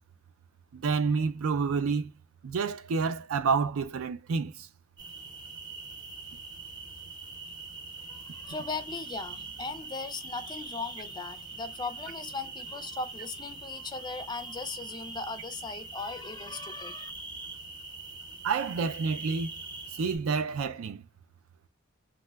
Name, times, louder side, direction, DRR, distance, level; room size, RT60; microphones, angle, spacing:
voice 1, 0.7-2.1 2.4-4.5 18.4-19.5 20.0-21.0, right 5 dB, 75° right, 0.4 m, -28 dB
sound 1, 5.0-20.2, right 3 dB, 20° right, 0.7 m, -43 dB
voice 2, 8.1-17.1, left 4 dB, 20° left, 0.4 m, -38 dB
2.9 x 2.2 x 3.3 m
head